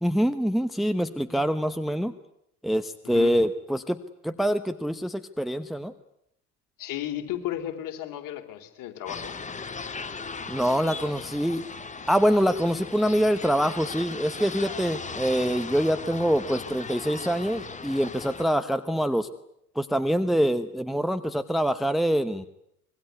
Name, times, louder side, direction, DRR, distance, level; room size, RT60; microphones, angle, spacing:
voice 1, 0.0-2.1 2.6-5.9 10.5-11.6 12.1-19.3 19.7-22.5, equal, ahead, 12 dB, 1.0 m, -25 dB
voice 2, 6.8-9.3, left 12 dB, 40° left, 5 dB, 3.6 m, -34 dB
sound 1, 9.1-18.4, left 4 dB, 15° left, 1.9 m, -38 dB
25.5 x 22.0 x 9.5 m, 0.77 s
figure-of-eight pair, 75°, 47 cm